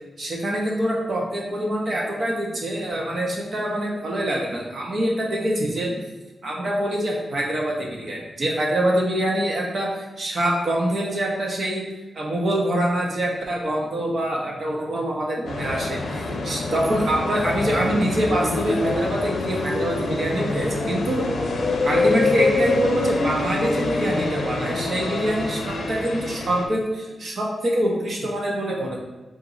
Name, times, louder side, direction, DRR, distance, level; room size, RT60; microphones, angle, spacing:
voice 1, 0.2-5.9 6.4-11.8 12.2-21.3 21.8-29.0, right 1 dB, 45° right, -2 dB, 0.9 m, -25 dB
sound 1, 15.4-26.6, left 3 dB, 60° left, 0.6 m, -26 dB
7.8 x 2.6 x 2.6 m, 1.1 s
wide cardioid pair, 170°, 0 cm